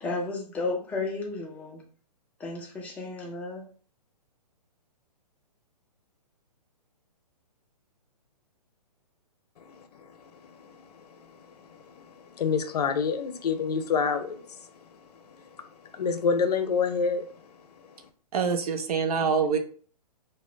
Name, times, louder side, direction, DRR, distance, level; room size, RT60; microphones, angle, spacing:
voice 1, 0.0-1.9 2.4-3.6, left 3 dB, 5° left, 0.4 m, -33 dB
voice 2, 9.6-14.7 15.4-15.5 15.9-17.4 17.8-17.9, left 5 dB, 70° left, 0.6 m, -29 dB
voice 3, 18.3-19.6, right 6 dB, 65° right, 0.6 m, -25 dB
2.8 x 2.1 x 3.7 m
hypercardioid pair, 140°, 21 cm